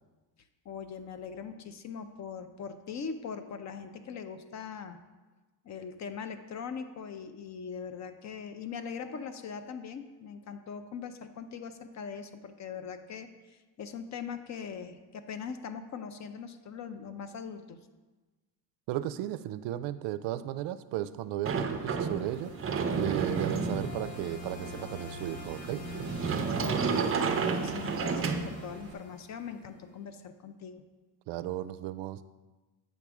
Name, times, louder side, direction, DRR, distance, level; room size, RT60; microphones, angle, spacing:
voice 1, 0.7-5.0 5.6-17.8 26.6-30.8, left 6 dB, 40° left, 9 dB, 0.5 m, -41 dB
voice 2, 18.9-22.5 23.0-25.8 31.3-32.2, right 13 dB, 70° right, 13 dB, 0.5 m, -35 dB
Sliding door, 21.5-28.9, right 5 dB, 30° right, 0.6 m, -32 dB
sound 1, 21.6-29.8, left 2 dB, 85° left, 1.4 m, -45 dB
8.3 x 3.5 x 6.0 m, 1.2 s
cardioid pair, 130°, 45 cm